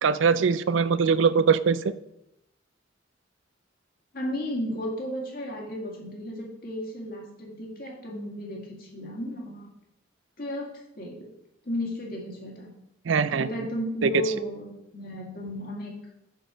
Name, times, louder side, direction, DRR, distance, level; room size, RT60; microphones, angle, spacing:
voice 1, 0.0-1.9 13.1-13.5, right 5 dB, 80° right, 15 dB, 0.4 m, -22 dB
voice 2, 4.1-9.7 10.4-10.7 11.0-11.3 11.6-12.7 13.3-16.0, equal, 50° left, -1 dB, 2.0 m, -34 dB
6.6 x 6.2 x 5.1 m, 0.83 s
head